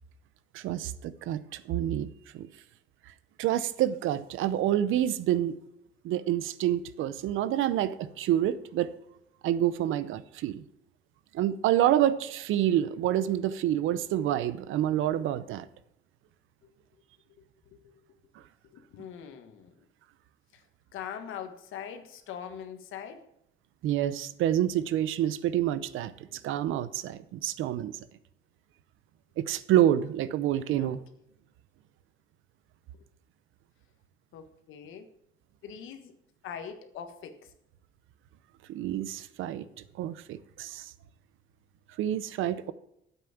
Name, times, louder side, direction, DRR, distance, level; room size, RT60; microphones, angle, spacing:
voice 1, 0.5-2.1 2.3-2.5 3.4-5.6 6.0-8.9 9.4-10.6 11.3-15.7 23.8-26.1 26.4-27.9 29.4-31.0 38.7-39.6 40.0-40.9 42.0-42.7, right 12 dB, 90° right, 15 dB, 0.7 m, -27 dB
voice 2, 17.7-18.0 18.6-19.7 20.5-20.6 20.9-23.2 30.7-30.9 34.3-35.1 35.6-36.1 36.4-37.5, left 8 dB, 85° left, 8 dB, 1.4 m, -42 dB
9.6 x 8.2 x 7.0 m, 0.78 s
cardioid pair, 90°, 20 cm